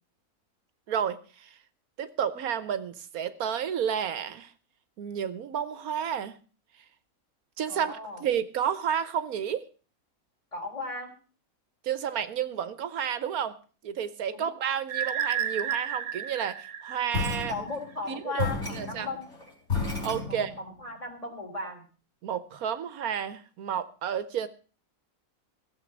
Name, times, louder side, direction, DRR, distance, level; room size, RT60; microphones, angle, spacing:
voice 1, 0.9-1.6 2.0-4.5 5.0-6.4 7.6-9.6 11.8-13.6 13.8-17.7 18.1-19.1 20.0-20.5 22.2-24.5, right 8 dB, 80° right, 13 dB, 1.4 m, -31 dB
voice 2, 7.7-8.2 10.5-11.1 14.3-14.5 17.5-19.3 20.3-21.8, left 3 dB, 25° left, 2 dB, 3.2 m, -37 dB
sound 1, 14.9-17.7, right 8 dB, 60° right, 1.4 m, -32 dB
sound 2, 17.1-18.0 18.4-20.8, left 4 dB, 50° left, 4.7 m, -32 dB
15.5 x 7.5 x 7.2 m, 0.39 s
omnidirectional pair, 1.5 m